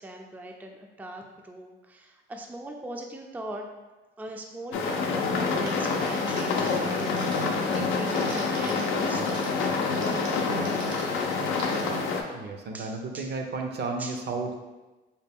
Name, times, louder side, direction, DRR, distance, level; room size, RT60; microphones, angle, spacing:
voice 1, 0.0-3.6 4.2-11.2 12.7-13.3 14.0-14.2, right 1 dB, 10° right, 2 dB, 0.3 m, -41 dB
sound 1, 4.7-12.2, left 4 dB, 85° left, 0.5 m, -27 dB
Crackle, 5.6-11.8, right 2 dB, 85° right, 0.9 m, -44 dB
voice 2, 12.3-14.5, right 3 dB, 55° right, 3 dB, 0.5 m, -33 dB
4.2 x 2.2 x 3.4 m, 1.1 s
cardioid pair, 90°, 20 cm